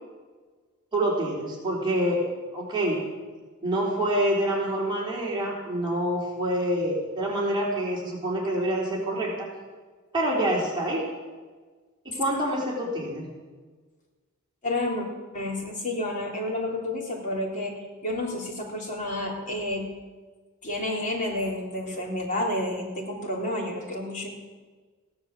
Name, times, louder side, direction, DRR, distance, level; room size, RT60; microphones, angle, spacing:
voice 1, 0.9-2.2 2.5-3.0 3.6-9.5 10.1-11.0 12.0-13.3, right 1 dB, 20° right, -4 dB, 4.1 m, -26 dB
voice 2, 14.6-15.1 15.3-19.9 20.6-24.4, left 1 dB, 40° left, -1 dB, 3.7 m, -30 dB
16.5 x 11.0 x 7.5 m, 1.4 s
head